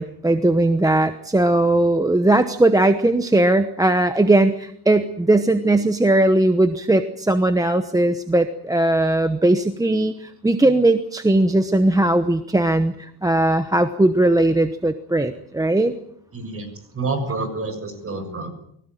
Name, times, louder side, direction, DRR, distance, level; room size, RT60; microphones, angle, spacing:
voice 1, 0.0-15.9, right 1 dB, 10° right, 9 dB, 1.0 m, -18 dB
voice 2, 16.3-16.7 16.9-18.5, right 3 dB, 30° right, 8 dB, 7.1 m, -28 dB
23.5 x 17.0 x 9.2 m, 0.71 s
cardioid pair, 150°, 42 cm